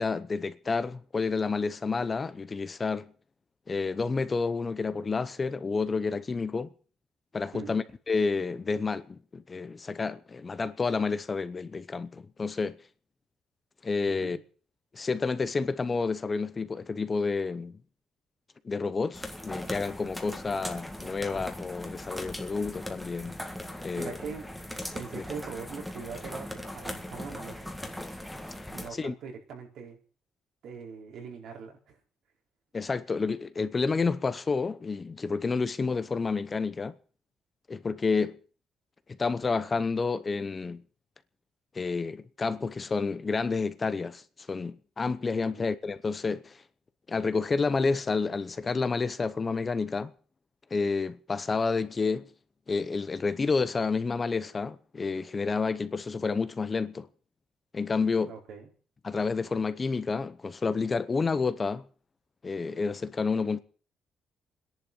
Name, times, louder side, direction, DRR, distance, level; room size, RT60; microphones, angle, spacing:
voice 1, 0.0-3.1 3.7-6.7 7.3-12.8 13.8-14.4 14.9-17.8 18.6-23.4 23.8-24.1 25.1-25.2 29.0-29.1 32.7-36.9 37.7-38.4 39.1-40.8 41.7-44.2 44.5-46.6 47.1-50.1 50.7-52.3 52.7-57.1 57.7-58.3 59.0-61.8 62.4-63.6, left 4 dB, 25° left, 0.8 m, -29 dB
voice 2, 7.5-7.9 14.1-14.4 23.9-24.4 24.9-27.6 28.7-30.0 30.6-32.0 45.4-45.7 58.3-58.7, right 6 dB, 70° right, 4.3 m, -42 dB
sound 1, 19.1-28.9, left 1 dB, ahead, 1.7 m, -39 dB
24.5 x 10.5 x 5.4 m
cardioid pair, 155°, 0 cm